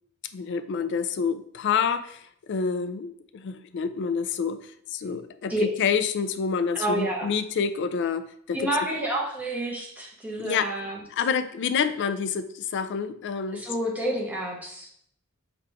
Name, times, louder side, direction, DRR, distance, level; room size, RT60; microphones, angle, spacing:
voice 1, 0.3-8.9 10.4-10.7 11.1-13.7, left 6 dB, 55° left, 11 dB, 0.3 m, -28 dB
voice 2, 6.7-7.3 8.5-11.0 13.5-14.9, right 1 dB, 5° right, -3 dB, 0.9 m, -29 dB
5.8 x 2.4 x 3.4 m, 0.67 s
head